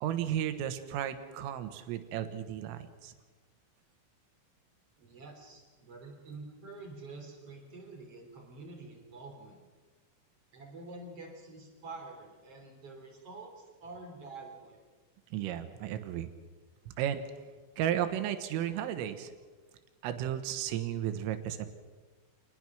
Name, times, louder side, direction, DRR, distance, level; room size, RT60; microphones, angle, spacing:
voice 1, 0.0-3.1 15.3-16.3 17.0-17.3 17.8-19.3 20.0-21.7, right 10 dB, 80° right, 9 dB, 3.9 m, -34 dB
voice 2, 5.0-9.6 10.5-14.8, right 3 dB, 30° right, 1 dB, 3.6 m, -47 dB
27.0 x 19.5 x 6.2 m, 1.4 s
omnidirectional pair, 6.0 m